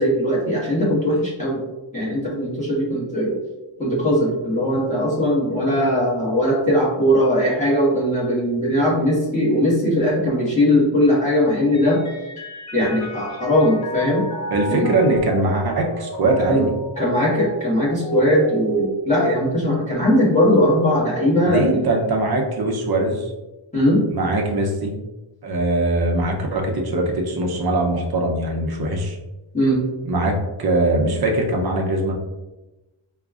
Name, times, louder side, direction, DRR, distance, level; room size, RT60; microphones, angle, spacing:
voice 1, 0.0-1.6 1.9-3.4 3.8-12.0 12.7-14.2 14.7-14.9 16.4-16.6 17.0-21.8 23.7-24.0 29.5-29.8, equal, 15° left, -7 dB, 1.3 m, -19 dB
Mallet percussion, 11.7-19.5, right 1 dB, 35° left, 0.6 m, -34 dB
voice 2, 14.5-16.7 21.4-23.3 24.1-24.9 25.4-29.2 30.1-32.1, right 2 dB, 50° right, 1 dB, 0.7 m, -21 dB
4.9 x 2.3 x 2.4 m, 1.1 s
wide cardioid pair, 125°, 47 cm